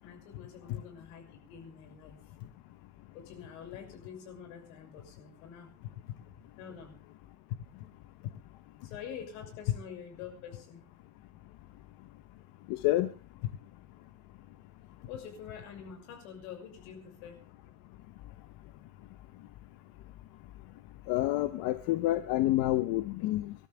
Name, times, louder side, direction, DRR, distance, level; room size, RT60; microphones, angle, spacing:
voice 1, 0.0-2.2 3.1-5.7 6.2-7.0 8.8-10.8 15.1-17.4, left 7 dB, 85° left, 3 dB, 6.3 m, -46 dB
voice 2, 12.7-13.1 21.1-23.5, left 16 dB, 55° left, 10 dB, 1.1 m, -28 dB
25.5 x 12.5 x 3.5 m, 0.34 s
cardioid pair, 155°, 41 cm